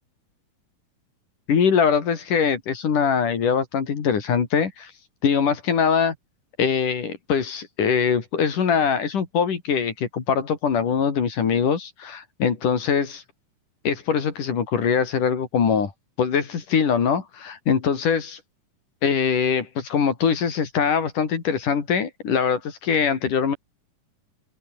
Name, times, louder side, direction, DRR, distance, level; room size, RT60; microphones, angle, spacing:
voice 1, 1.5-4.9 5.2-6.1 6.6-13.2 13.8-15.9 16.2-18.4 19.0-23.6, left 6 dB, 80° left, 4.7 m, -22 dB
open air
omnidirectional pair, 3.6 m